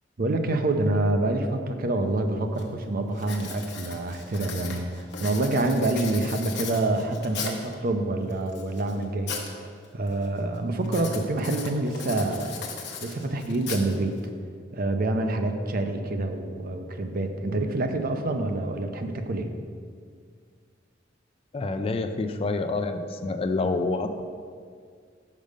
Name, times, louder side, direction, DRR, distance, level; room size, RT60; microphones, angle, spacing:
voice 1, 0.2-9.4 9.9-12.6 13.0-14.2 14.7-19.5, right 2 dB, 50° right, 6 dB, 0.6 m, -27 dB
Writing, 2.0-2.1 2.6-2.8 3.2-7.7 8.3-9.5 9.8-10.3 10.8-14.3, left 5 dB, 65° left, 0.9 m, -38 dB
voice 2, 21.5-24.3, left 3 dB, 30° left, 8 dB, 0.4 m, -27 dB
5.3 x 5.2 x 6.5 m, 2.1 s
head